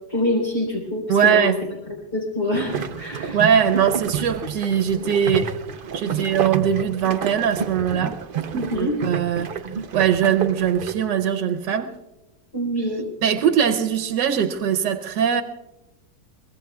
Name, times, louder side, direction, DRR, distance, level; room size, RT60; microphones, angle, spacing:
voice 1, 0.1-1.5 2.1-3.4 6.1-6.2 8.5-9.0 12.5-13.0, left 1 dB, 35° left, 4.2 m, -25 dB
voice 2, 1.1-1.6 3.3-5.5 5.9-8.2 8.5-9.5 9.9-12.0 13.2-15.4, right 8 dB, 90° right, 1.4 m, -21 dB
sound 1, 2.5-10.9, right 6 dB, 55° right, 0.5 m, -30 dB
23.5 x 21.5 x 2.3 m
omnidirectional pair, 1.8 m